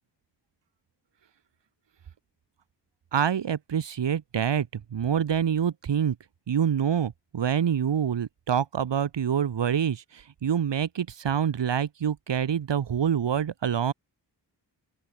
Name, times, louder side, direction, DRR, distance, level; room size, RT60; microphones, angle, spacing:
voice 1, 3.1-6.2 6.5-13.9, right 8 dB, 75° right, 1.7 m, -26 dB
open air
wide cardioid pair, 135°, 43 cm